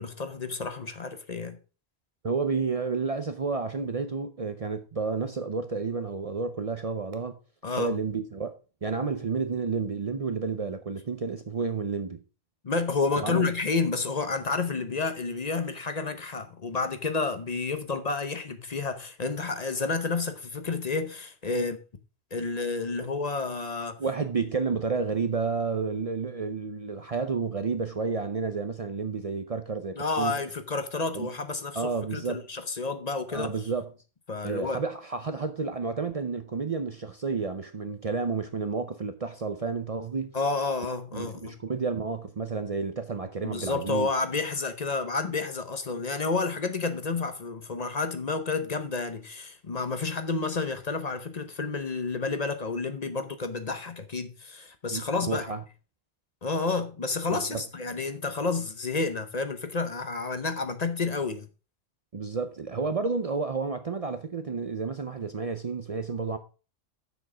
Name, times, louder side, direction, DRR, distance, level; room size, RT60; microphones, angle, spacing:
voice 1, 0.0-1.6 7.6-7.9 12.6-21.8 22.3-24.0 30.0-33.5 34.3-34.8 40.3-41.6 43.4-55.4 56.4-61.5, left 4 dB, 40° left, 0.9 m, -30 dB
voice 2, 2.2-7.4 7.7-8.5 8.8-12.2 13.2-13.5 24.0-30.4 31.1-31.3 31.7-32.5 33.3-33.9 34.4-40.3 41.1-44.1 54.9-55.6 57.3-57.6 62.1-66.4, right 4 dB, 40° right, 0.6 m, -31 dB
7.0 x 6.3 x 4.9 m
omnidirectional pair, 1.1 m